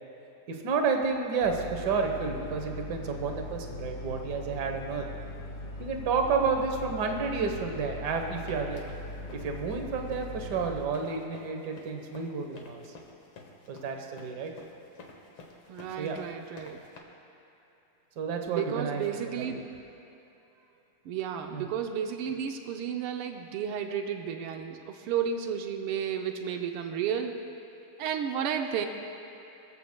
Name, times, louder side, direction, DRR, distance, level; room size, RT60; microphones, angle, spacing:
voice 1, 0.5-5.0 5.8-8.8 9.3-12.8 13.7-14.5 16.0-16.2 18.2-19.5 21.5-21.7, right 5 dB, 55° right, 4 dB, 1.5 m, -30 dB
sound 1, 1.4-10.8, left 1 dB, 50° left, 1.4 m, -40 dB
sound 2, 8.1-17.0, left 3 dB, 85° left, 2.3 m, -50 dB
voice 2, 15.7-16.8 18.5-19.6 21.0-27.4 28.0-28.9, right 8 dB, 85° right, 4 dB, 1.6 m, -32 dB
22.0 x 14.5 x 2.2 m, 2.9 s
omnidirectional pair, 2.4 m